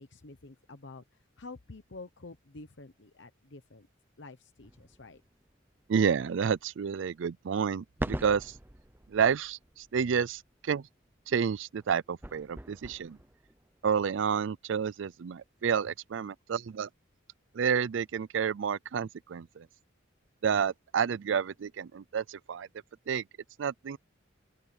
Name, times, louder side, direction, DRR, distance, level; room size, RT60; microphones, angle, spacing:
voice 1, 0.0-3.9 4.2-5.2, left 3 dB, 65° left, 1.0 m, -49 dB
sound 1, 4.6-6.3 6.7-6.8 7.3-7.4 8.0-14.7 15.1-15.2 15.5-15.6, right 1 dB, 10° right, 0.7 m, -43 dB
voice 2, 5.9-8.5 9.1-10.9 11.3-13.2 13.8-16.9 17.5-19.7 20.4-22.7 23.1-23.2 23.6-24.0, right 7 dB, 70° right, 0.4 m, -30 dB
open air
head